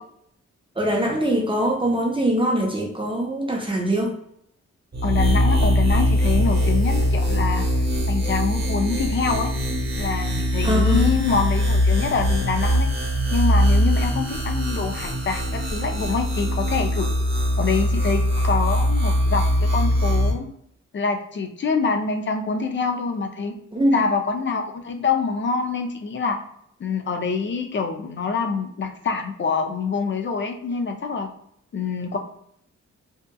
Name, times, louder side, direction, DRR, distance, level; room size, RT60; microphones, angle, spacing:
voice 1, 0.8-4.1 10.6-11.0 23.7-24.0, right 1 dB, 15° right, -1 dB, 0.6 m, -22 dB
sound 1, 4.9-20.3, equal, 35° right, 1.0 m, -21 dB
voice 2, 5.0-7.7 8.1-9.6 10.0-12.9 13.3-17.1 17.6-20.5 20.9-23.5 23.9-26.4 26.8-31.3 31.7-32.2, left 5 dB, 40° left, 4 dB, 0.5 m, -25 dB
2.8 x 2.4 x 2.2 m, 0.71 s
cardioid pair, 80°, 30 cm